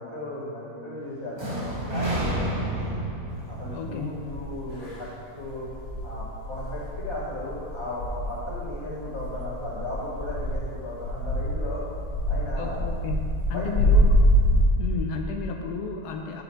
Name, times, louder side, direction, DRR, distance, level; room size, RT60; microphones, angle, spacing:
voice 1, 0.0-2.8 3.5-5.7 6.0-11.8 12.3-12.8 13.5-13.7, left 1 dB, 20° left, -7 dB, 1.8 m, -36 dB
sound 1, 1.4-5.3, right 1 dB, 20° right, 1.2 m, -31 dB
voice 2, 3.7-4.3 12.6-14.3 14.8-16.4, left 5 dB, 80° left, 3 dB, 1.1 m, -33 dB
sound 2, 3.7-3.8 4.3-4.9 5.4-14.6, equal, 50° left, 2.0 m, -25 dB
7.9 x 5.6 x 4.4 m, 2.5 s
omnidirectional pair, 1.7 m